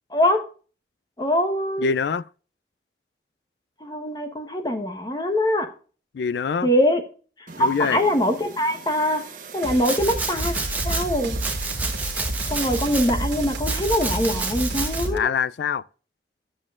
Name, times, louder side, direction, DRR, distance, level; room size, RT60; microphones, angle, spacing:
voice 1, 0.1-0.4 1.2-1.9 3.8-5.7 6.6-7.0 7.4-9.2 9.5-10.5 10.8-11.4 12.5-15.3, equal, 20° left, 1.0 m, -23 dB
voice 2, 1.8-2.2 6.1-6.7 7.6-8.0 15.1-15.8, left 6 dB, 75° left, 0.3 m, -24 dB
sound 1, 7.5-15.2, right 7 dB, 45° right, 1.1 m, -40 dB
sound 2, 9.6-15.2, right 1 dB, 90° right, 1.7 m, -30 dB
Domestic sounds home sounds, 9.8-11.0 11.4-13.1 13.7-15.1, right 3 dB, 10° right, 1.0 m, -30 dB
13.0 x 7.5 x 2.4 m
head